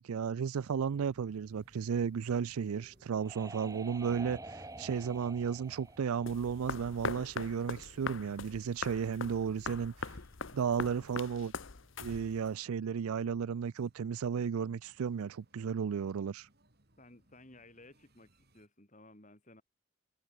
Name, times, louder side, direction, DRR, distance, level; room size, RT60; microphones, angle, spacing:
voice 1, 0.0-10.2 10.5-11.5 12.0-16.5, right 7 dB, 85° right, 0.4 m, -34 dB
sound 1, 0.5-18.7, right 1 dB, 45° right, 3.7 m, -65 dB
sound 2, 2.6-7.2, right 2 dB, 15° right, 4.3 m, -49 dB
sound 3, 6.3-12.5, left 4 dB, 60° left, 1.0 m, -42 dB
voice 2, 17.0-19.6, left 2 dB, 35° left, 3.9 m, -57 dB
head